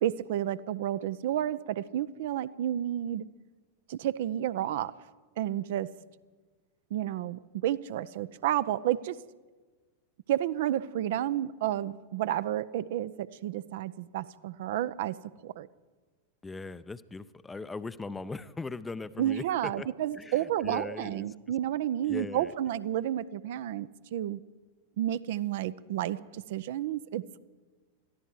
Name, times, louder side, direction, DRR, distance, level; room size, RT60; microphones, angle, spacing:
voice 1, 0.0-3.3 3.9-4.9 5.4-5.9 6.9-9.2 10.3-15.2 15.4-15.7 19.2-24.4 25.0-27.4, right 12 dB, 55° right, 15 dB, 0.5 m, -31 dB
voice 2, 16.4-19.9 20.1-21.3 22.1-22.5, left 3 dB, 10° left, 15 dB, 0.5 m, -39 dB
22.0 x 14.0 x 4.8 m, 1.3 s
figure-of-eight pair, 90°, 0 cm